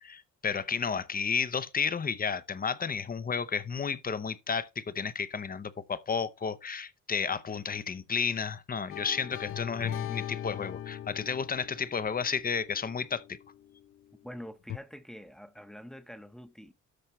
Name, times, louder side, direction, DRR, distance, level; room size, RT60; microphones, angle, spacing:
voice 1, 0.0-13.4, left 6 dB, 30° left, 0.8 m, -32 dB
sound 1, 8.9-13.8 14.7-14.8, left 11 dB, 45° left, 0.4 m, -40 dB
voice 2, 14.2-16.7, equal, ahead, 0.9 m, -45 dB
13.0 x 4.4 x 3.1 m
cardioid pair, 90°, 30 cm